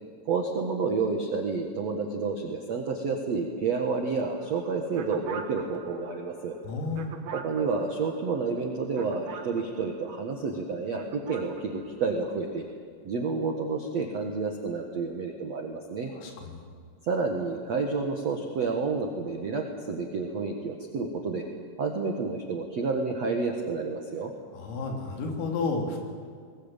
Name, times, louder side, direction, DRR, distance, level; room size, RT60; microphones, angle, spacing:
voice 1, 0.3-6.5 7.3-12.6 13.0-16.1 17.0-21.4 21.8-24.3, right 4 dB, 80° right, 3 dB, 1.5 m, -30 dB
sound 1, 4.4-10.5 10.9-12.7, right 6 dB, 65° right, 2.6 m, -44 dB
voice 2, 6.6-7.2 16.2-16.6 24.5-26.0, left 3 dB, 90° left, 2 dB, 5.7 m, -32 dB
21.5 x 21.0 x 9.0 m, 2.1 s
omnidirectional pair, 5.8 m